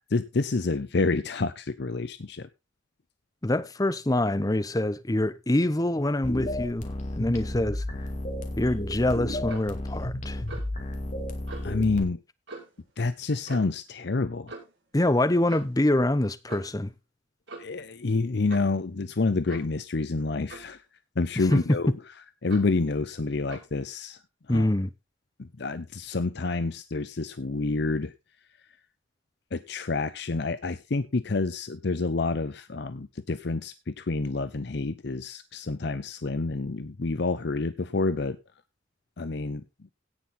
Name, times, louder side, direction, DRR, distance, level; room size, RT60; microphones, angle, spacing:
voice 1, 0.1-2.5 11.6-12.2 13.0-14.5 17.6-20.8 21.2-21.9 22.4-24.2 24.5-24.6 25.6-28.1 29.5-38.4 39.2-39.6, left 3 dB, 60° left, 0.7 m, -28 dB
voice 2, 3.4-7.8 8.6-10.4 14.9-16.9 21.4-21.6 24.5-24.9, left 1 dB, 20° left, 0.8 m, -25 dB
sound 1, 6.2-12.0, left 1 dB, 40° left, 2.4 m, -33 dB
Clock, 9.4-9.8 10.5-10.8 11.5-11.7 12.5-12.8 13.5-13.8 14.5-14.7 15.5-15.8 16.5-16.8 17.5-17.8 18.5-18.8 19.5-19.8 20.5-20.8 21.5-21.9 22.5-22.8 23.5-23.7, right 3 dB, 75° right, 6.2 m, -43 dB
17.0 x 5.8 x 4.2 m
head